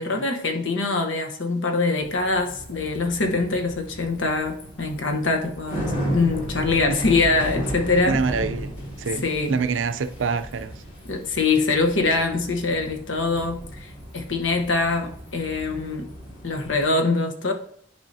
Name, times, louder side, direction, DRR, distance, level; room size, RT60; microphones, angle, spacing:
voice 1, 0.0-8.2 9.2-9.6 11.1-16.1 16.4-17.5, left 3 dB, 90° left, 1.0 m, -24 dB
Bicycle, 2.0-16.8, equal, 45° left, 2.5 m, -35 dB
voice 2, 8.1-8.7 9.0-9.2 9.5-10.8, right 4 dB, 85° right, 0.5 m, -26 dB
10.5 x 4.8 x 2.7 m
head